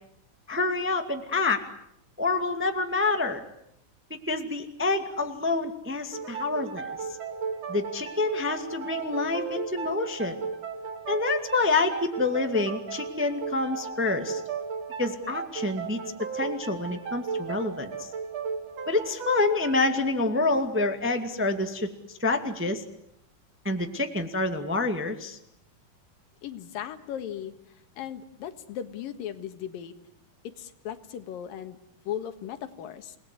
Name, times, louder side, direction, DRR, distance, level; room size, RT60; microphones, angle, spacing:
voice 1, 0.5-1.6 2.2-3.4 4.3-7.2 7.7-10.4 11.1-14.4 15.0-18.1 18.9-22.8 23.6-25.4, left 3 dB, 5° right, 6 dB, 1.3 m, -27 dB
sound 1, 6.1-21.5, right 5 dB, 50° right, 3.1 m, -36 dB
voice 2, 26.4-27.5 28.0-29.9 30.4-31.8 32.1-33.2, left 10 dB, 80° left, 10 dB, 3.2 m, -37 dB
29.5 x 19.5 x 9.9 m, 0.75 s
omnidirectional pair, 4.0 m